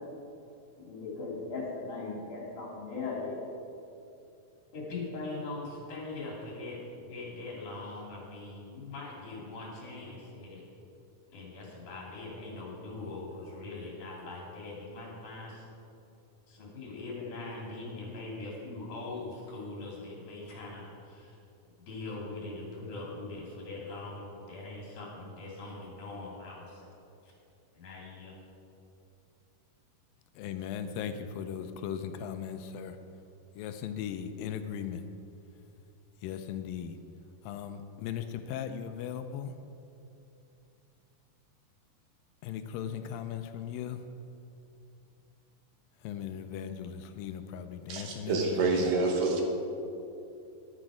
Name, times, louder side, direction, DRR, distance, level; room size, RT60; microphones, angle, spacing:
voice 1, 0.8-3.4 4.7-10.6 11.3-15.6 16.5-21.4 21.9-26.9 27.7-28.3, left 3 dB, 60° left, -4 dB, 4.0 m, -41 dB
voice 2, 30.4-33.0 33.6-35.0 36.2-37.0 37.4-39.5 42.4-44.0 46.0-49.0, left 8 dB, 85° left, 9 dB, 2.3 m, -38 dB
voice 3, 47.9-49.4, right 3 dB, 70° right, 1 dB, 2.7 m, -27 dB
11.0 x 10.0 x 4.9 m, 2.7 s
omnidirectional pair, 4.1 m